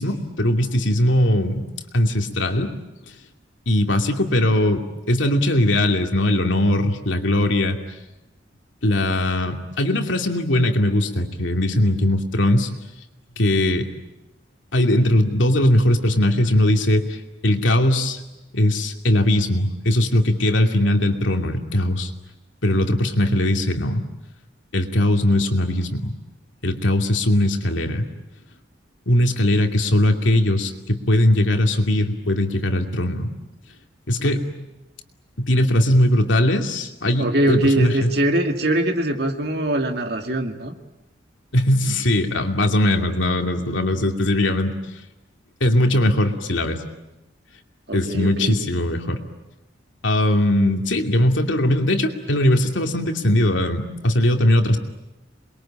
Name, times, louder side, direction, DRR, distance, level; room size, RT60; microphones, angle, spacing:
voice 1, 0.0-1.7 1.9-2.7 3.7-7.8 8.8-12.7 13.4-13.9 14.7-17.2 17.4-18.2 18.5-22.1 22.6-24.0 24.7-26.1 26.6-28.1 29.1-33.3 34.1-34.7 35.4-38.1 41.5-44.7 45.6-46.8 47.9-49.2 50.0-54.8, left 1 dB, 80° left, 4 dB, 2.6 m, -20 dB
voice 2, 37.2-40.7 47.9-48.6, right 1 dB, 55° right, 5 dB, 2.3 m, -22 dB
28.0 x 22.0 x 8.8 m, 0.99 s
head